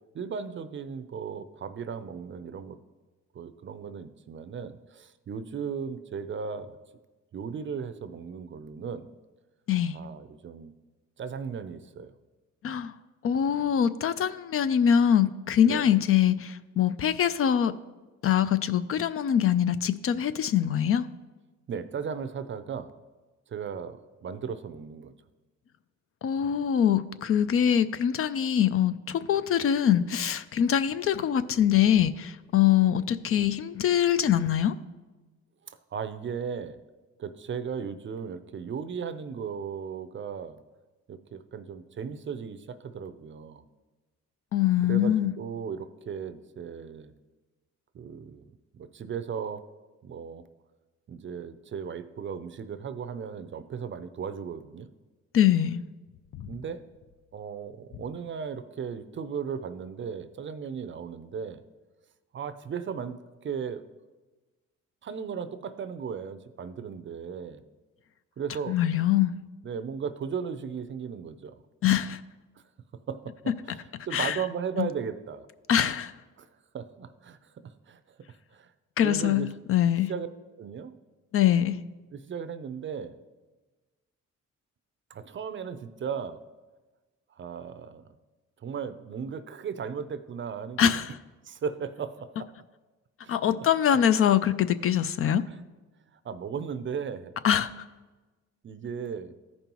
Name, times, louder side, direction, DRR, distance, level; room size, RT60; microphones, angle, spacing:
voice 1, 0.1-2.8 3.3-6.8 7.3-9.1 9.9-10.7 11.2-12.1 15.7-16.0 21.7-22.9 23.5-25.1 27.4-27.5 35.7-36.8 37.2-40.6 41.1-43.6 44.8-47.1 47.9-48.4 48.7-49.6 50.0-50.5 51.1-54.9 56.5-56.8 57.3-61.6 62.3-63.8 65.0-67.6 68.4-68.8 69.6-71.6 73.1-75.5 76.4-76.5 76.7-77.4 77.6-78.0 78.5-78.7 79.0-79.5 80.1-80.3 80.6-81.0 82.1-83.1 85.1-86.4 87.4-88.0 88.6-90.9 91.4-92.5 93.2-93.7 93.9-94.0 95.5-95.6 96.2-97.3 98.6-99.3, right 6 dB, 40° right, 13 dB, 0.5 m, -36 dB
voice 2, 13.2-17.7 18.2-21.1 26.2-34.7 44.5-45.3 55.3-55.8 68.7-69.3 71.8-72.2 74.1-74.4 74.8-74.9 75.7-76.1 79.0-80.1 81.3-81.8 90.8-91.1 93.3-95.4 97.4-97.7, left 9 dB, 50° left, 13 dB, 0.4 m, -23 dB
14.0 x 5.3 x 3.0 m, 1.2 s
cardioid pair, 90°, 30 cm